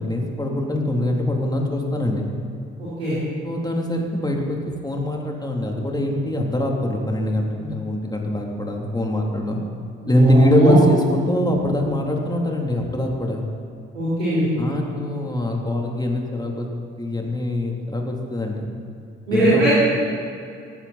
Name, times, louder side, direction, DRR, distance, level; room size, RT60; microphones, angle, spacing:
voice 1, 0.0-2.3 3.4-9.6 10.1-13.4 14.6-16.7 17.0-18.7 19.3-19.7, left 1 dB, 10° left, 0 dB, 3.3 m, -23 dB
voice 2, 2.8-3.2 10.0-10.8 13.9-14.5 19.3-19.7, right 1 dB, 85° right, -12 dB, 3.7 m, -20 dB
18.5 x 15.0 x 4.3 m, 2.5 s
figure-of-eight pair, 40°, 32 cm